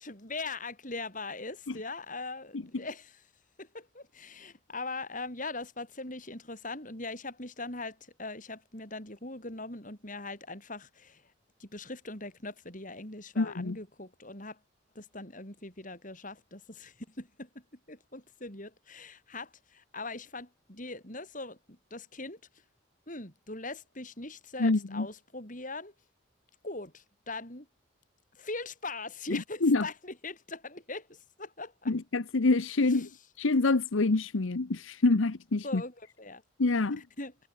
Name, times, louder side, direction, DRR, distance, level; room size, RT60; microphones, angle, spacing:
voice 1, 0.0-3.2 3.6-11.3 11.6-14.6 14.9-22.4 23.1-25.9 26.6-27.7 28.3-31.9 32.8-33.1 35.6-36.4 37.0-37.3, left 3 dB, 40° left, 7.6 m, -41 dB
voice 2, 13.4-13.8 24.6-25.1 29.3-29.9 31.9-33.1 33.4-35.8 36.6-37.0, left 3 dB, 90° left, 0.9 m, -26 dB
head